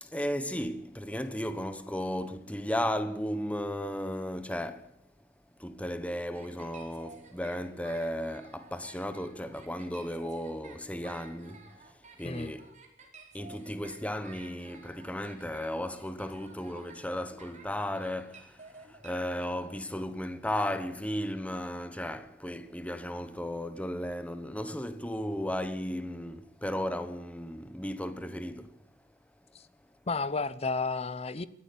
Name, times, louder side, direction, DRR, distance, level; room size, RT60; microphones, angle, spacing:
voice 1, 0.0-4.9 5.6-12.7 13.3-28.8, equal, 5° left, 1.2 m, -35 dB
sound 1, 6.3-19.1, right 4 dB, 40° right, 4.3 m, -53 dB
voice 2, 30.1-31.5, left 4 dB, 30° left, 0.9 m, -32 dB
22.0 x 14.0 x 8.6 m
head